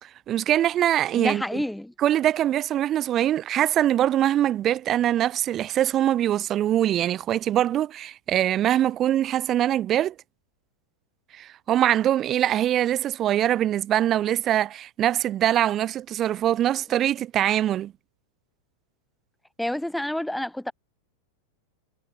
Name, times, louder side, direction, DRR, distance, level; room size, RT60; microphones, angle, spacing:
voice 1, 0.0-1.6 2.0-10.1 11.3-17.9, right 12 dB, 30° right, 0.7 m, -23 dB
voice 2, 1.1-1.9 19.6-20.7, left 1 dB, 5° left, 1.5 m, -28 dB
figure-of-eight pair, 90°, 0 cm